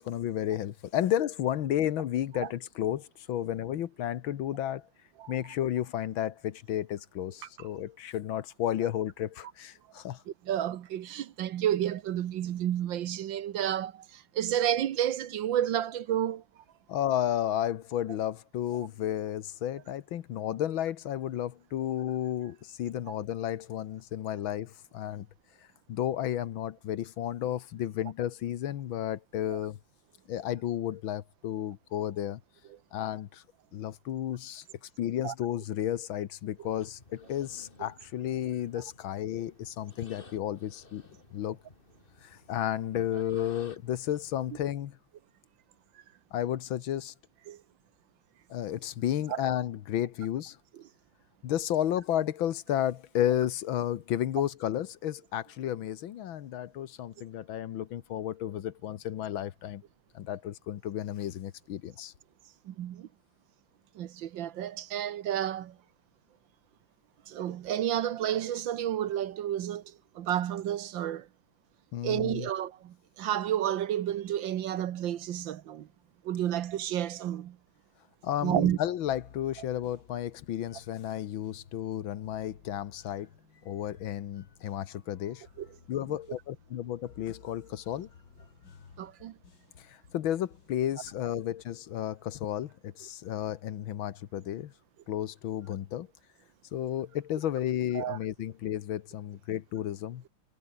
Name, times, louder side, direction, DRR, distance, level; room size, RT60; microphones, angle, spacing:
voice 1, 0.0-4.9 5.3-10.2 16.9-25.3 25.9-29.8 30.3-32.4 32.9-33.4 33.7-34.6 35.0-41.0 41.3-41.6 42.2-45.0 46.3-47.1 48.5-50.6 51.4-59.8 60.2-62.1 71.9-72.5 78.2-83.3 83.7-85.4 85.9-88.1 89.8-94.7 95.1-96.1 96.7-100.2, left 11 dB, 75° left, 1.8 m, -32 dB
voice 2, 10.3-16.4 29.5-29.6 35.2-35.3 43.1-43.2 47.5-47.6 49.3-49.4 62.6-63.1 63.9-65.8 67.3-71.3 72.0-75.9 76.2-77.6 78.4-78.8 85.6-85.7 89.0-89.4 97.9-98.2, right 11 dB, 70° right, 1.6 m, -31 dB
sound 1, 36.6-44.7, left 3 dB, 25° left, 2.4 m, -55 dB
sound 2, 79.0-91.8, left 6 dB, 55° left, 2.7 m, -57 dB
omnidirectional pair, 2.3 m